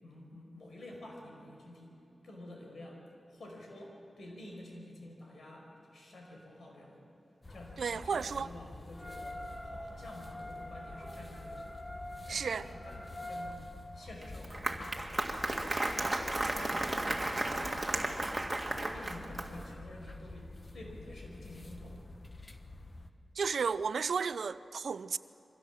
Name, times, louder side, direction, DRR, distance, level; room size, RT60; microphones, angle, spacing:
voice 1, 0.0-1.9 2.2-7.0 7.5-11.8 12.3-13.6 13.9-15.3 15.7-18.3 18.7-22.1, left 1 dB, 75° left, 5.1 m, -49 dB
sound 1, 7.4-23.1, left 2 dB, 35° left, 1.2 m, -49 dB
voice 2, 7.8-8.5 12.3-12.7 23.4-25.2, right 5 dB, 80° right, 0.5 m, -33 dB
sound 2, 8.9-13.4, left 1 dB, 10° left, 6.2 m, -45 dB
Applause, 14.2-19.7, right 2 dB, 25° right, 1.9 m, -34 dB
24.0 x 16.0 x 7.4 m
cardioid pair, 55°, 0 cm